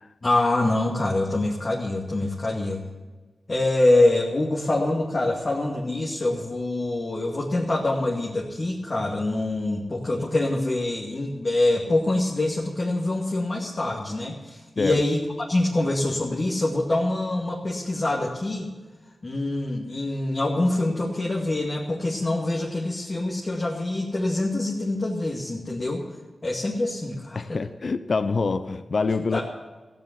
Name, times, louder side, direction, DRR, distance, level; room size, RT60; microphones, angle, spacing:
voice 1, 0.2-2.8 3.5-15.2 15.5-18.7 19.2-26.0 26.4-27.6 29.3-29.4, left 2 dB, 45° left, 2.3 m, -25 dB
voice 2, 27.3-29.4, left 4 dB, 60° left, 0.7 m, -25 dB
15.0 x 7.8 x 8.3 m
cardioid pair, 45°, 0 cm